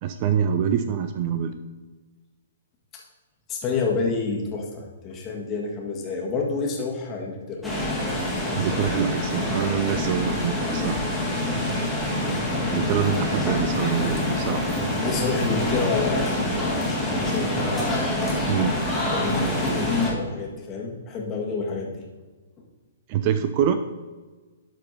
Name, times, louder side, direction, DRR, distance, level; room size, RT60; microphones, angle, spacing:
voice 1, 0.0-1.6 8.5-11.0 12.7-14.7 18.5-18.7 23.1-23.8, right 8 dB, 35° right, 10 dB, 0.5 m, -25 dB
voice 2, 3.5-7.6 15.0-18.1 18.9-22.0 22.6-22.7, left 4 dB, 25° left, -1 dB, 1.8 m, -29 dB
sound 1, 7.6-20.1, left 1 dB, ahead, 2.0 m, -26 dB
12.0 x 4.5 x 4.2 m, 1.3 s
figure-of-eight pair, 115°, 0 cm